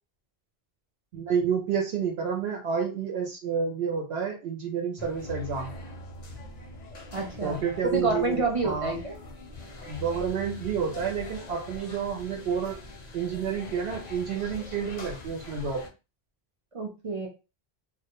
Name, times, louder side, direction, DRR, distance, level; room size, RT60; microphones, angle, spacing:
voice 1, 1.1-5.7 7.4-8.9 9.9-12.8 13.1-15.8, right 6 dB, 80° right, 1 dB, 0.8 m, -29 dB
sound 1, 5.0-15.9, left 1 dB, 50° left, 0.6 m, -42 dB
voice 2, 7.1-9.2 16.7-17.3, right 3 dB, 50° right, 0 dB, 0.4 m, -29 dB
2.1 x 2.1 x 2.8 m, 0.30 s
omnidirectional pair, 1.1 m